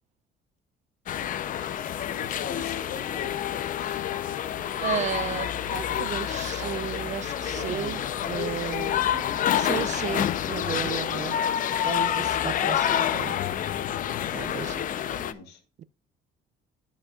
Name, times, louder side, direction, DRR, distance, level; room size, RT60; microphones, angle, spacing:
sound 1, 1.1-15.3, left 10 dB, 55° left, 0.6 m, -28 dB
Conversation, 1.9-11.0, right 8 dB, 70° right, 1.0 m, -48 dB
voice 1, 2.1-4.0 14.3-14.8 15.1-15.6, left 5 dB, 85° left, 2.1 m, -41 dB
Wind instrument woodwind instrument, 2.4-5.9 6.2-10.4, left 4 dB, 25° left, 1.2 m, -48 dB
voice 2, 4.8-9.0 9.5-11.4 11.8-13.4 14.3-14.8 15.8-15.9, right 9 dB, 45° right, 0.5 m, -34 dB
13.5 x 5.2 x 2.4 m
cardioid pair, 110°, 17 cm